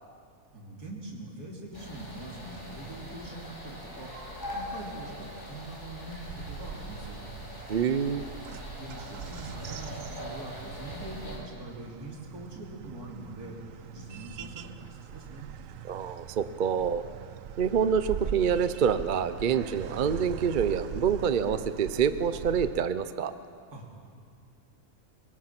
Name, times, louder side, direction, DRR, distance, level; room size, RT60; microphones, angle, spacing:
voice 1, 0.5-7.2 8.7-15.5 23.7-24.0, right 2 dB, 80° right, -1 dB, 3.7 m, -43 dB
sound 1, 1.7-11.4, left 1 dB, 30° left, 5.2 m, -42 dB
sound 2, 6.3-22.9, right 8 dB, 65° right, 1.0 m, -42 dB
voice 2, 7.7-8.2 15.9-17.0 17.6-23.3, right 7 dB, 45° right, 12 dB, 0.6 m, -27 dB
23.0 x 22.0 x 6.0 m, 2.3 s
omnidirectional pair, 1.6 m